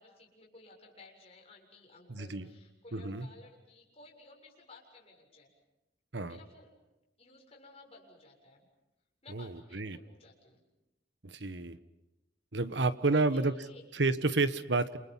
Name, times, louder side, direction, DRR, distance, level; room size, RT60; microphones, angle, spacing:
voice 1, 0.0-5.5 6.2-6.8 7.2-8.7 9.2-10.6 12.7-13.8, left 2 dB, 35° left, -1 dB, 7.2 m, -56 dB
voice 2, 2.1-2.5 2.9-3.3 6.1-6.4 9.3-10.0 11.2-11.8 12.5-13.5 13.9-15.0, right 3 dB, 70° right, 12 dB, 1.4 m, -30 dB
29.0 x 28.5 x 5.8 m, 0.95 s
head